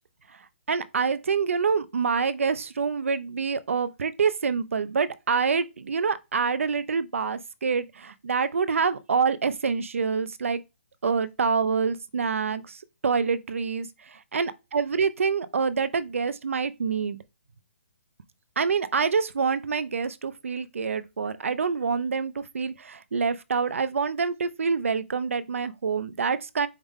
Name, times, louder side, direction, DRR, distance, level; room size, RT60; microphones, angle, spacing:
voice 1, 0.3-10.6 11.0-17.2 18.6-26.7, right 5 dB, 80° right, 0.5 m, -26 dB
4.9 x 2.1 x 3.6 m
hypercardioid pair, 180°, 7 cm